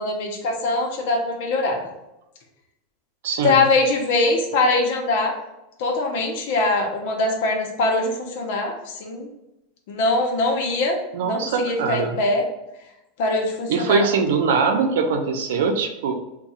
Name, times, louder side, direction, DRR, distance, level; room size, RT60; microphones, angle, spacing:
voice 1, 0.0-1.8 3.4-5.3 5.8-9.3 9.9-11.0 11.2-12.4 13.2-14.1, left 2 dB, 55° left, 2 dB, 0.7 m, -22 dB
voice 2, 3.2-3.6 11.1-12.2 13.7-16.1, right 5 dB, 80° right, 5 dB, 0.6 m, -22 dB
3.6 x 2.3 x 4.2 m, 0.93 s
supercardioid pair, 175°, 0 cm